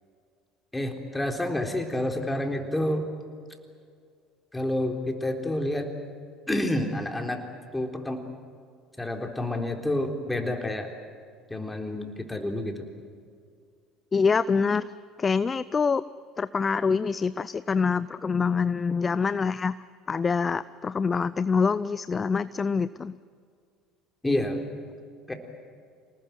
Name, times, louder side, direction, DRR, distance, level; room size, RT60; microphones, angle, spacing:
voice 1, 0.7-3.1 4.5-5.9 6.5-7.4 7.7-8.2 9.0-10.9 11.5-12.9 24.2-24.7 25.3-25.4, left 1 dB, 10° left, 4 dB, 3.8 m, -29 dB
voice 2, 14.1-14.9 15.2-16.0 16.4-19.8 20.1-23.1, left 5 dB, 30° left, 16 dB, 0.5 m, -25 dB
27.0 x 19.5 x 9.3 m, 2.2 s
hypercardioid pair, 65°, 0 cm